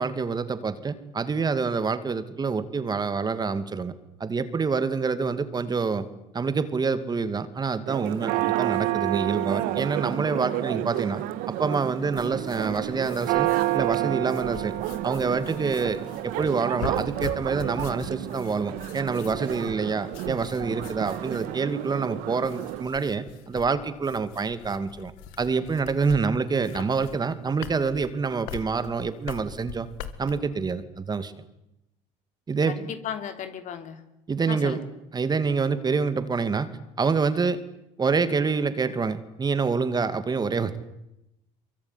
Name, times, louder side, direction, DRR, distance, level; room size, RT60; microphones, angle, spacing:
voice 1, 0.0-3.9 4.2-6.1 6.3-11.2 11.5-13.5 13.7-14.7 15.0-25.1 25.4-29.9 30.2-31.3 32.5-32.8 34.3-34.8 35.1-36.7 37.0-37.6 38.0-40.8, right 5 dB, 25° right, 12 dB, 2.3 m, -27 dB
Church bell, 7.9-22.8, right 15 dB, 75° right, 1.6 m, -30 dB
sound 1, 12.1-30.4, left 8 dB, 75° left, 2.3 m, -43 dB
voice 2, 32.6-34.0 34.5-34.9, left 8 dB, 55° left, 9 dB, 3.4 m, -35 dB
23.5 x 23.5 x 9.9 m, 0.88 s
supercardioid pair, 90°, 15 cm